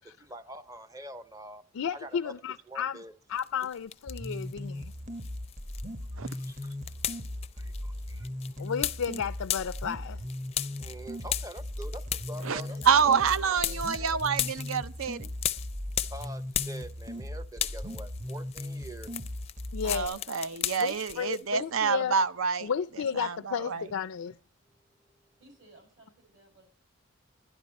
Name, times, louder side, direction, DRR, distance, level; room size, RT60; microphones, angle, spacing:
voice 1, 0.2-1.6 2.0-2.3 2.7-3.1 6.4-6.6 7.6-8.3 10.8-12.7 13.1-13.2 16.1-19.1, right 1 dB, 15° right, 0.6 m, -44 dB
voice 2, 1.7-3.0 3.3-4.9 8.6-10.2 19.7-20.2 20.8-22.2 22.6-24.4, left 7 dB, 85° left, 0.4 m, -33 dB
sound 1, 3.4-4.5 4.9-17.3 17.5-21.4, left 11 dB, 30° left, 0.4 m, -36 dB
sound 2, 4.1-20.1, left 1 dB, 35° right, 1.0 m, -38 dB
voice 3, 12.3-14.2 17.6-17.7 19.8-20.6 25.4-26.6, right 3 dB, 60° right, 7.1 m, -51 dB
voice 4, 12.9-15.3 19.9-22.7 23.2-23.8, right 6 dB, 80° right, 0.6 m, -27 dB
12.0 x 11.0 x 4.2 m
head